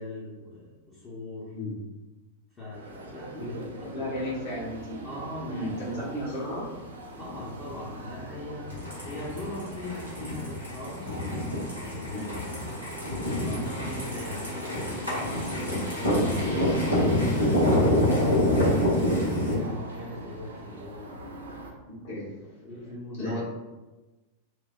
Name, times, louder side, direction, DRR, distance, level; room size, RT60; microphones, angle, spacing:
voice 1, 0.0-1.5 2.5-3.5 3.8-4.3 5.0-6.3 7.2-11.2 11.8-18.8 19.3-21.5 22.6-23.4, left 1 dB, 25° left, -7 dB, 0.7 m, -41 dB
sound 1, 2.7-21.7, right 1 dB, 70° right, 0.3 m, -41 dB
voice 2, 3.3-3.7 3.9-5.0 5.5-6.6 12.1-12.3 22.0-22.3 23.2-23.4, equal, 55° left, -7 dB, 1.3 m, -33 dB
sound 2, 8.7-19.5, left 1 dB, 90° left, 0.8 m, -26 dB
3.1 x 2.0 x 2.4 m, 1.1 s
figure-of-eight pair, 90°, 0 cm